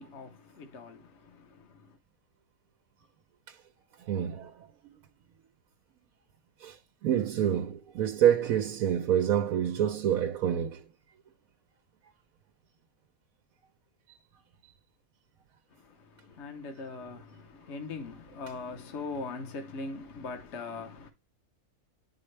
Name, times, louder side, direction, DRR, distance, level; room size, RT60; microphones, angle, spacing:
voice 1, 0.0-2.0 15.7-21.1, left 3 dB, 55° left, 1.2 m, -41 dB
voice 2, 4.1-4.5 6.6-6.8 7.0-10.8, right 10 dB, 75° right, 1.1 m, -27 dB
9.8 x 4.3 x 3.2 m
omnidirectional pair, 1.5 m